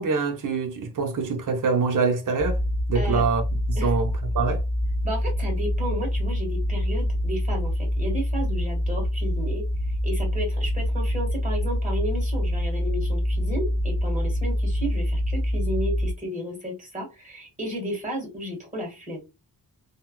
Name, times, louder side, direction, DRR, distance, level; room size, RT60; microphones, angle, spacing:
voice 1, 0.0-2.6 2.9-3.4 3.7-4.6, right 4 dB, 50° right, 0.8 m, -25 dB
sound 1, 2.4-16.1, equal, 35° left, 0.4 m, -26 dB
voice 2, 5.0-19.2, equal, 20° right, 1.7 m, -33 dB
3.6 x 2.2 x 2.3 m
wide cardioid pair, 105°, 40 cm